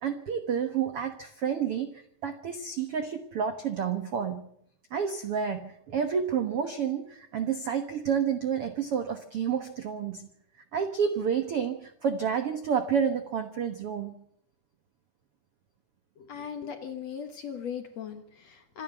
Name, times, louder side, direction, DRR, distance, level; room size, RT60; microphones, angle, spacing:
voice 1, 0.0-4.4 4.9-10.3 10.7-14.1, right 7 dB, 70° right, 8 dB, 1.4 m, -30 dB
voice 2, 16.2-18.8, left 7 dB, 55° left, 7 dB, 2.1 m, -38 dB
26.5 x 12.0 x 9.0 m, 0.70 s
omnidirectional pair, 4.6 m